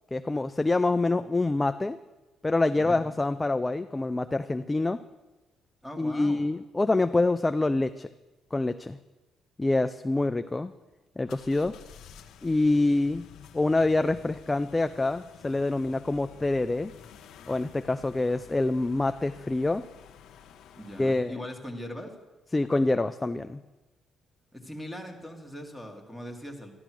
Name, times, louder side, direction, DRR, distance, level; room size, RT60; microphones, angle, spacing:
voice 1, 0.1-2.0 2.4-5.0 6.0-8.1 8.5-9.0 9.6-10.7 11.2-11.8 12.4-13.3 13.5-16.9 17.5-19.8 21.0-21.3 22.5-23.6, left 2 dB, 15° left, 10 dB, 0.4 m, -26 dB
voice 2, 5.8-6.4 20.8-22.1 24.5-26.7, equal, ahead, 3 dB, 2.2 m, -40 dB
sound 1, 11.3-21.4, left 8 dB, 75° left, 1.0 m, -51 dB
13.5 x 11.5 x 6.2 m, 1.1 s
cardioid pair, 110°, 0 cm